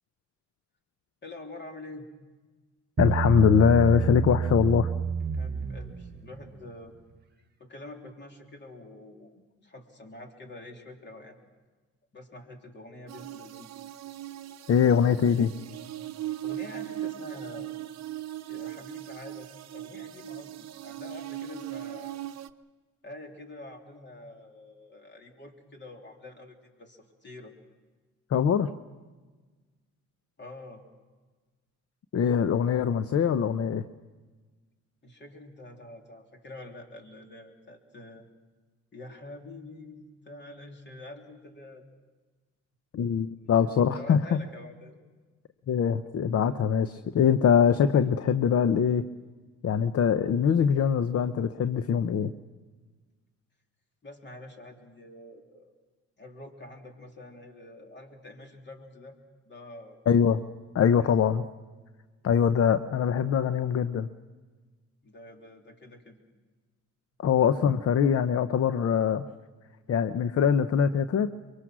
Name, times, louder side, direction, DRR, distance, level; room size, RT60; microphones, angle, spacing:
voice 1, 1.2-2.1 5.3-6.9 7.6-11.4 12.1-13.7 16.4-17.7 18.5-22.2 23.0-27.5 30.4-30.8 35.0-38.3 38.9-41.8 43.4-44.9 54.0-55.7 56.2-59.2 59.5-60.0 61.0-61.1 65.0-66.2, left 2 dB, 35° left, 3 dB, 3.3 m, -46 dB
voice 2, 3.0-4.9 14.7-15.5 28.3-28.7 32.1-33.8 42.9-44.4 45.7-49.1 49.6-52.3 60.1-60.4 60.7-61.4 62.2-64.1 67.2-69.2 69.9-71.3, left 7 dB, 50° left, 12 dB, 0.8 m, -23 dB
Bass guitar, 3.0-6.4, right 7 dB, 35° right, 1.4 m, -29 dB
sound 1, 13.1-22.5, right 14 dB, 60° right, 0.8 m, -39 dB
24.0 x 23.5 x 6.2 m, 1.3 s
cardioid pair, 90°, 30 cm